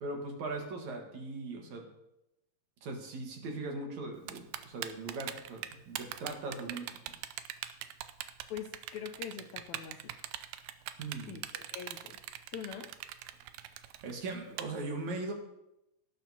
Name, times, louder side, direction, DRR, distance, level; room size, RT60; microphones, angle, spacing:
voice 1, 0.0-1.9 2.8-7.1 11.0-11.4 13.6-15.3, right 3 dB, 65° right, 2 dB, 2.6 m, -40 dB
Typing, 4.3-14.6, right 13 dB, 85° right, 2.1 m, -41 dB
voice 2, 8.5-10.1 11.3-12.2 12.5-12.9, left 8 dB, 80° left, 3 dB, 1.7 m, -43 dB
17.5 x 9.2 x 2.8 m, 0.88 s
omnidirectional pair, 3.8 m